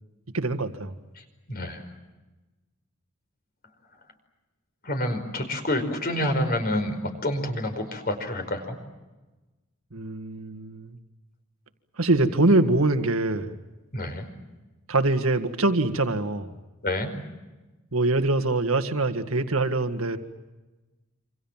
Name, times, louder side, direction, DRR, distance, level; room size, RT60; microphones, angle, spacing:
voice 1, 0.3-0.9 9.9-11.0 12.0-13.6 14.9-16.5 17.9-20.2, right 2 dB, 75° right, 8 dB, 1.8 m, -24 dB
voice 2, 1.5-1.8 4.8-8.8 13.9-14.2 16.8-17.1, left 1 dB, 45° left, 7 dB, 4.9 m, -28 dB
27.5 x 26.5 x 7.4 m, 1.1 s
head